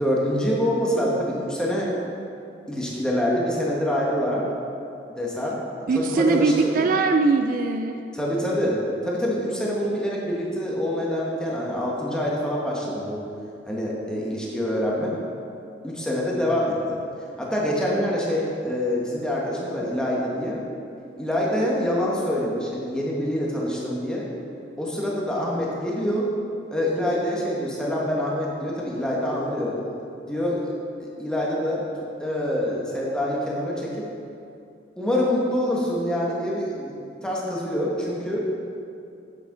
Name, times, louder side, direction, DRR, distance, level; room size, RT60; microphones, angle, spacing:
voice 1, 0.0-1.9 2.7-4.5 5.1-5.6 5.9-6.9 8.1-13.2 13.7-15.1 15.8-17.0 17.4-20.6 21.2-24.3 24.8-26.3 26.7-29.8 30.2-30.6 31.0-31.8 32.2-34.1 35.0-36.9 37.2-38.4, equal, 5° left, -4 dB, 1.3 m, -25 dB
voice 2, 5.9-8.0, right 4 dB, 50° right, 5 dB, 0.3 m, -21 dB
8.9 x 6.9 x 3.9 m, 2.6 s
head